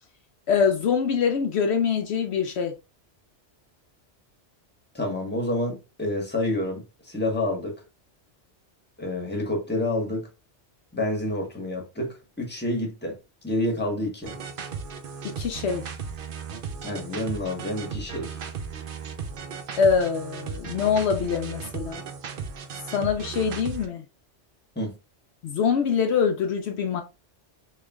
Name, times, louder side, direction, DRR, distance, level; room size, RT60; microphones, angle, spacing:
voice 1, 0.5-2.7 15.2-15.8 19.8-22.0 22.9-24.0 25.4-27.0, left 6 dB, 70° left, 0.8 m, -24 dB
voice 2, 4.9-7.8 9.0-10.3 10.9-13.2 13.4-14.3 16.8-18.4 24.7-25.0, left 1 dB, 10° left, 1.2 m, -28 dB
sound 1, 14.2-23.9, right 6 dB, 55° right, 0.7 m, -36 dB
3.2 x 3.0 x 3.5 m
omnidirectional pair, 1.2 m